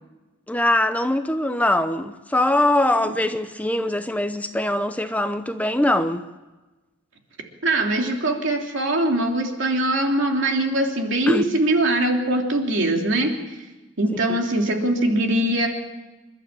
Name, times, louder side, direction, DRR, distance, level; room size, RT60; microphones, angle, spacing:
voice 1, 0.5-6.2 11.3-11.4 14.3-14.4, left 1 dB, 5° left, 0.7 m, -22 dB
voice 2, 7.6-13.4 14.0-15.7, right 1 dB, 65° right, 3.1 m, -22 dB
28.0 x 12.0 x 8.9 m
head